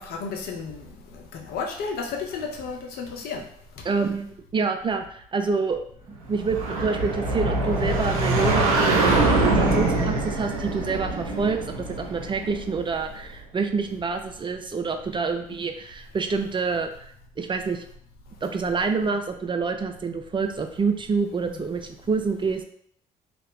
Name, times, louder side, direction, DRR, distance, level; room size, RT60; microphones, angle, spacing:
voice 1, 0.0-3.4 21.4-21.6, left 5 dB, 60° left, 1 dB, 0.7 m, -33 dB
voice 2, 3.8-5.8 6.3-16.9 17.4-17.8 18.4-22.6, right 4 dB, 25° right, 6 dB, 0.4 m, -27 dB
sound 1, 6.3-12.9, right 2 dB, 85° right, 0.6 m, -24 dB
2.8 x 2.4 x 3.3 m, 0.65 s
hypercardioid pair, 50°, 18 cm